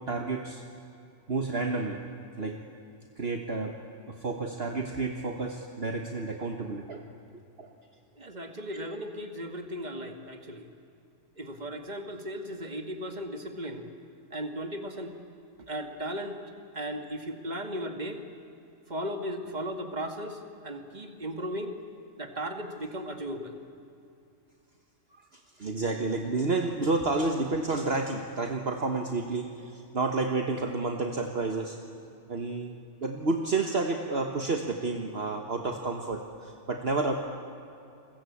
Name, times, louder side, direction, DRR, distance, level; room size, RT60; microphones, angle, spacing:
voice 1, 0.1-0.6 1.3-2.1 2.4-2.6 3.2-3.8 4.1-7.0 7.6-7.7 25.1-31.8 32.3-32.7 33.0-37.2, right 3 dB, 50° right, 3 dB, 1.7 m, -30 dB
voice 2, 8.2-10.7 11.4-13.9 14.3-15.2 15.6-16.4 16.7-18.2 18.9-21.8 22.2-23.6, equal, 35° right, 5 dB, 2.2 m, -36 dB
29.5 x 22.0 x 8.7 m, 2.7 s
omnidirectional pair, 1.3 m